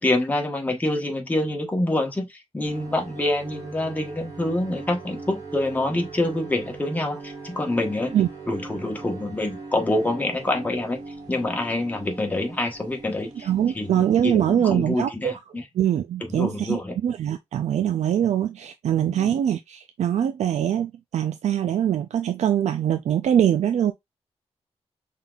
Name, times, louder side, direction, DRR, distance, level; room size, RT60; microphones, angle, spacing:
voice 1, 0.0-8.2 8.5-11.0 11.3-13.5 13.7-15.6 16.3-16.9 18.9-19.3, left 1 dB, 15° left, 1.1 m, -26 dB
sound 1, 2.6-14.3, right 3 dB, 35° right, 2.8 m, -40 dB
voice 2, 13.4-15.4 15.7-23.9, right 10 dB, 80° right, 0.4 m, -23 dB
5.7 x 3.7 x 2.3 m
wide cardioid pair, 150°, 11 cm